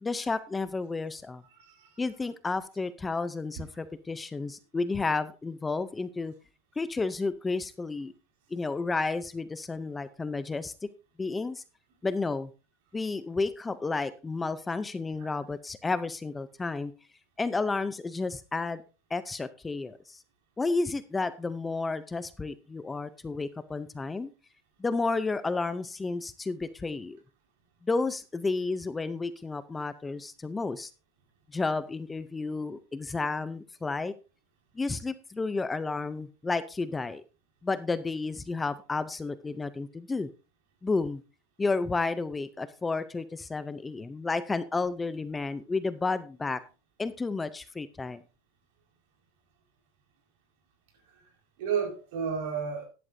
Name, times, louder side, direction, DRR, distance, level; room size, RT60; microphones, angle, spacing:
voice 1, 0.0-1.4 2.0-6.3 6.8-8.1 8.5-10.7 11.2-11.6 12.0-12.5 12.9-16.9 17.4-18.8 19.1-20.2 20.6-24.3 24.8-27.2 27.8-30.9 31.5-34.1 34.8-37.2 37.6-40.3 40.8-41.2 41.6-46.6 47.0-48.2, left 3 dB, 10° left, 0.4 m, -31 dB
voice 2, 1.5-2.0 15.2-15.3 51.1-51.3 51.6-52.9, right 6 dB, 65° right, 4.5 m, -32 dB
13.0 x 11.0 x 2.6 m
supercardioid pair, 160°, 0 cm